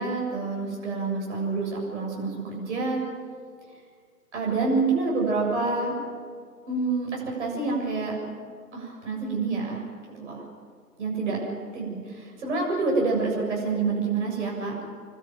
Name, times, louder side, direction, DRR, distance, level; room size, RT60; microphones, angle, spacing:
voice 1, 0.0-3.0 4.3-5.9 6.7-8.2 8.7-9.8 10.2-10.4 11.0-11.4 11.7-14.7, right 3 dB, 45° right, -1 dB, 7.4 m, -27 dB
27.5 x 12.5 x 9.3 m, 2.1 s
figure-of-eight pair, 145°, 48 cm